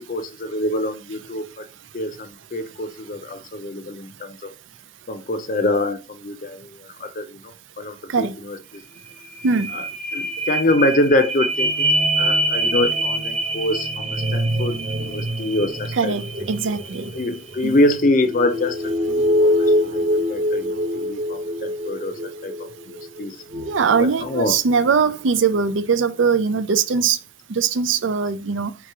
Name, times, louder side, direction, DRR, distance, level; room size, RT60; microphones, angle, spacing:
voice 1, 0.0-1.7 1.9-4.5 5.1-8.8 9.7-9.8 10.1-16.1 17.1-19.6 19.8-23.4 24.0-24.6, left 1 dB, 45° left, 0.5 m, -25 dB
sound 1, 8.7-8.8 9.1-25.0 25.5-25.6, equal, 35° right, 0.7 m, -24 dB
voice 2, 15.9-17.1 17.6-17.8 23.7-27.2 27.5-28.8, right 5 dB, 85° right, 0.5 m, -21 dB
3.5 x 3.0 x 4.7 m
head